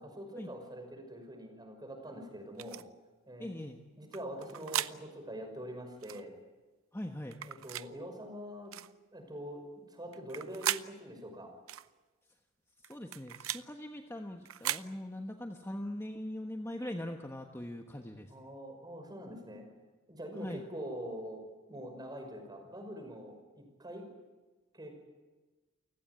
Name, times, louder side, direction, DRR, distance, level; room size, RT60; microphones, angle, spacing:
voice 1, 0.0-2.8 3.3-3.7 4.0-6.3 7.5-8.7 9.1-9.6 9.9-11.5 18.3-19.7 20.1-21.4 21.7-24.1 24.7-24.9, equal, 20° right, 4 dB, 5.7 m, -44 dB
sound 1, 2.6-2.8 4.1-4.9 6.0-6.2 7.3-7.9 8.7-8.9 10.1-10.9 11.7-11.9 12.8-13.6 14.4-14.9, right 12 dB, 85° right, 0.7 m, -37 dB
voice 2, 3.4-3.8 6.9-7.4 12.8-18.3 20.4-20.6, left 1 dB, 15° left, 3 dB, 1.3 m, -41 dB
29.0 x 17.0 x 9.5 m, 1.2 s
head